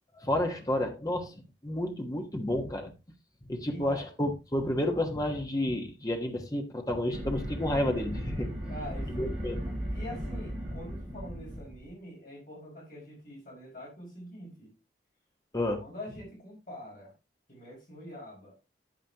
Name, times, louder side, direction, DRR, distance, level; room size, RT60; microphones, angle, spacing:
voice 1, 0.2-1.3 1.6-2.9 3.5-8.5 9.1-9.6 15.5-15.8, left 1 dB, 20° left, 1.3 m, -30 dB
voice 2, 3.6-4.1 8.7-9.3 9.9-14.7 15.8-17.1 17.5-18.5, left 1 dB, 50° left, 5.7 m, -45 dB
sound 1, 7.1-11.9, equal, ahead, 6.0 m, -36 dB
9.6 x 9.2 x 2.9 m
head